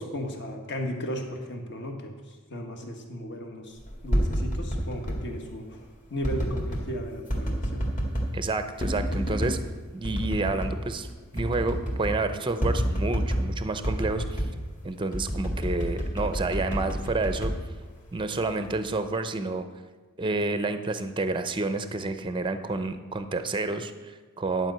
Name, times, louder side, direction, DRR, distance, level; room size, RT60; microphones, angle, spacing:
voice 1, 0.0-2.1 2.5-3.8 4.0-5.7 6.1-7.8, equal, 50° left, 3 dB, 1.5 m, -35 dB
sound 1, 3.9-5.2 6.2-6.9 7.3-8.3 8.8-9.6 10.0-10.8 11.0-11.1 11.4-12.2 12.6-13.5 13.8-14.6 15.1-18.2 18.6-19.1, equal, 35° left, 2.1 m, -28 dB
voice 2, 8.3-9.6 9.9-11.1 11.3-14.4 14.8-17.5 18.1-19.7 20.2-24.7, right 3 dB, 20° right, 9 dB, 0.6 m, -29 dB
10.5 x 5.2 x 7.8 m, 1.4 s
head